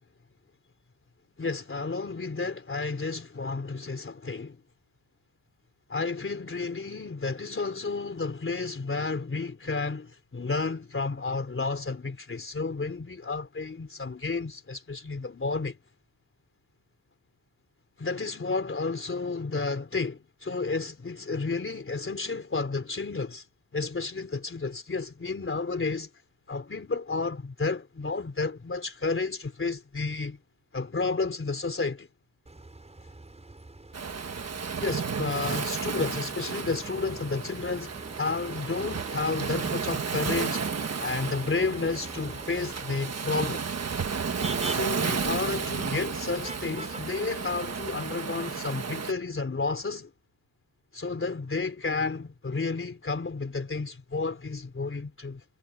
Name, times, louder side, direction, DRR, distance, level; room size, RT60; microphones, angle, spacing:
voice 1, 1.4-4.6 5.9-15.8 18.0-23.5 23.7-26.1 26.5-30.4 30.7-32.1 34.6-37.9 38.2-40.6 41.0-43.8 44.7-50.1 50.9-55.4, left 4 dB, 25° left, 3.5 m, -31 dB
Motor vehicle (road), 32.5-48.1, right 2 dB, 15° right, 5.7 m, -44 dB
Waves surf, 33.9-49.1, right 6 dB, 35° right, 1.5 m, -33 dB
wide cardioid pair, 170°, 47 cm